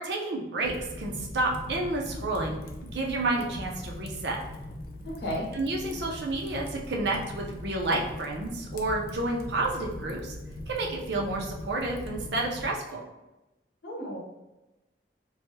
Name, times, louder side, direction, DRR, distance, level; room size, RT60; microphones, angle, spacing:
voice 1, 0.0-2.6 2.8-4.4 5.5-10.4 10.7-13.0, right 2 dB, 70° right, -1 dB, 0.6 m, -30 dB
Fire, 0.6-12.7, left 1 dB, 50° left, 0.4 m, -41 dB
voice 2, 5.0-5.5 13.8-14.2, equal, 70° left, -2 dB, 0.8 m, -33 dB
3.1 x 2.2 x 3.0 m, 1.0 s
head